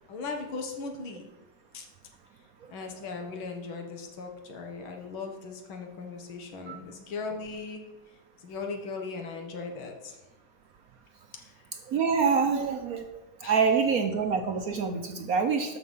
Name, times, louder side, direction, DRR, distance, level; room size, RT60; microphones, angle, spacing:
voice 1, 0.1-1.3 1.7-1.9 2.7-7.8 8.4-10.2 11.4-11.5 13.4-13.5, left 4 dB, 90° left, 4 dB, 2.3 m, -38 dB
voice 2, 11.9-13.1 13.4-15.8, right 5 dB, 60° right, 6 dB, 1.0 m, -26 dB
13.0 x 6.1 x 5.5 m, 1.0 s
omnidirectional pair, 2.2 m